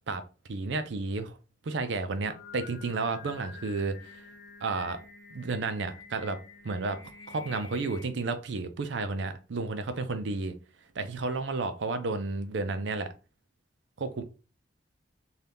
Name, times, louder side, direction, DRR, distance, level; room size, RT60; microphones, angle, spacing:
voice 1, 0.5-1.4 1.7-4.0 4.6-5.0 5.3-6.4 6.6-7.0 7.3-10.5 11.0-13.1 14.0-14.2, right 3 dB, 75° right, 0.5 m, -32 dB
Singing, 2.1-8.1, left 4 dB, 75° left, 0.5 m, -49 dB
2.7 x 2.3 x 3.4 m
head